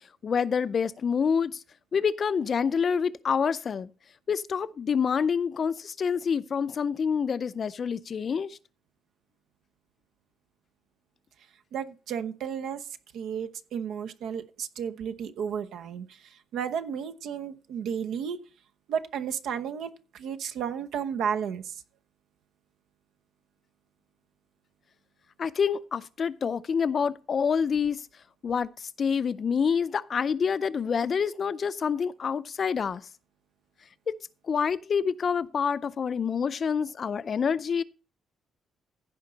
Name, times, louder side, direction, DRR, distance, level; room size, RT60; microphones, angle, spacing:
voice 1, 0.2-1.6 1.9-3.9 4.3-8.6 25.4-28.0 28.4-33.1 34.1-34.2 34.5-37.8, left 6 dB, 35° left, 0.4 m, -27 dB
voice 2, 11.7-12.8 13.1-16.1 16.5-18.4 18.9-21.8, right 7 dB, 75° right, 0.9 m, -33 dB
15.5 x 5.3 x 4.0 m
cardioid pair, 150°, 0 cm